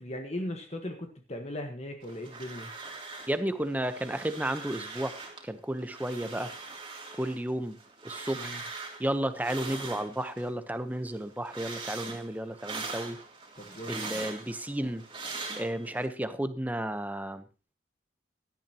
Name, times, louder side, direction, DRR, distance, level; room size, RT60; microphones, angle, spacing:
voice 1, 0.0-2.7 8.3-8.6 13.6-14.3, left 1 dB, 35° left, 4 dB, 1.4 m, -38 dB
sound 1, 2.0-3.4 3.7-5.4 5.8-10.5 10.9-16.1, right 3 dB, 25° right, 2.9 m, -42 dB
voice 2, 3.3-6.5 7.2-8.6 9.0-13.2 13.9-15.0 15.6-17.5, right 1 dB, 10° right, 10 dB, 0.9 m, -33 dB
17.5 x 12.0 x 2.9 m, 0.33 s
head